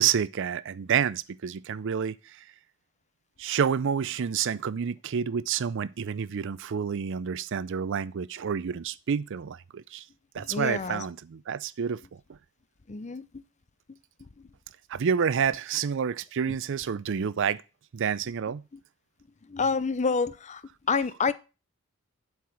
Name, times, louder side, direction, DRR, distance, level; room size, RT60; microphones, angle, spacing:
voice 1, 0.0-2.4 3.4-10.0 10.3-12.0 14.9-17.6 17.9-18.6, right 7 dB, 60° right, 0.4 m, -29 dB
voice 2, 10.4-11.0 12.9-13.4 13.9-14.0 14.4-14.5 16.5-16.6 19.5-20.6 20.9-21.3, left 5 dB, 35° left, 0.5 m, -28 dB
7.6 x 4.8 x 6.9 m
head